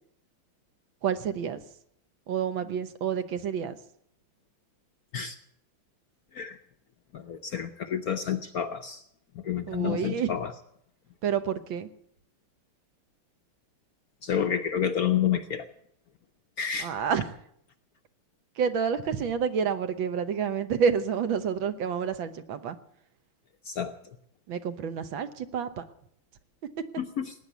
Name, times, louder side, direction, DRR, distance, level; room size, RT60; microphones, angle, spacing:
voice 1, 1.0-1.6 2.3-3.8 9.7-10.3 11.2-11.9 16.8-17.4 18.6-22.8 24.5-25.9, right 7 dB, 70° right, 11 dB, 1.7 m, -29 dB
voice 2, 7.1-9.0 9.3-10.5 14.2-15.6 16.6-16.9 23.6-23.9 27.0-27.3, left 8 dB, 60° left, 8 dB, 1.0 m, -29 dB
18.5 x 9.4 x 8.2 m, 0.70 s
omnidirectional pair, 2.3 m